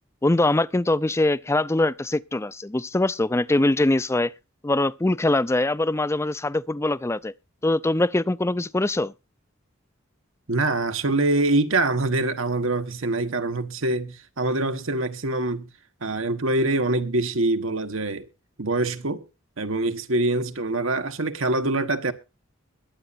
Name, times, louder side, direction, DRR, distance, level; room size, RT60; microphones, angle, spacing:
voice 1, 0.2-4.3 4.6-7.3 7.6-9.1, left 2 dB, 15° left, 0.5 m, -23 dB
voice 2, 10.5-15.7 16.0-18.2 18.6-19.2 19.6-22.1, right 2 dB, 90° right, 1.4 m, -24 dB
22.0 x 8.6 x 2.6 m
head